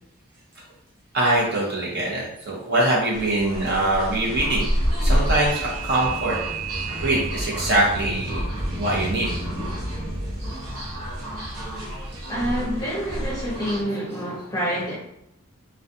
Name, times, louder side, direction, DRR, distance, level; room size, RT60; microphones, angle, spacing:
voice 1, 1.1-4.7 5.0-6.4 7.0-8.5 8.8-9.3 9.9-10.0 10.4-10.7 11.5-11.7 12.2-12.3, right 1 dB, 50° right, -4 dB, 0.8 m, -23 dB
sound 1, 3.1-13.8, right 1 dB, 85° right, 0.7 m, -28 dB
voice 2, 12.3-14.9, equal, 15° left, -4 dB, 0.7 m, -27 dB
2.3 x 2.2 x 2.6 m, 0.79 s
head